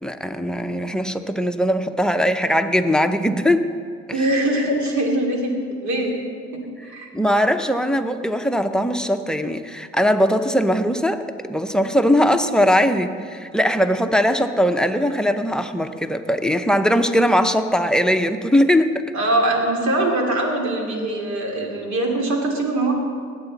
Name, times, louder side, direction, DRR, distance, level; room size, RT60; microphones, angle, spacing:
voice 1, 0.0-3.7 4.1-4.2 7.1-19.0, equal, ahead, 9 dB, 0.7 m, -20 dB
voice 2, 4.1-5.5 5.8-6.2 6.5-7.1 19.1-22.9, right 1 dB, 70° right, 0 dB, 2.6 m, -22 dB
18.5 x 8.3 x 4.0 m, 2.1 s
cardioid pair, 80°, 29 cm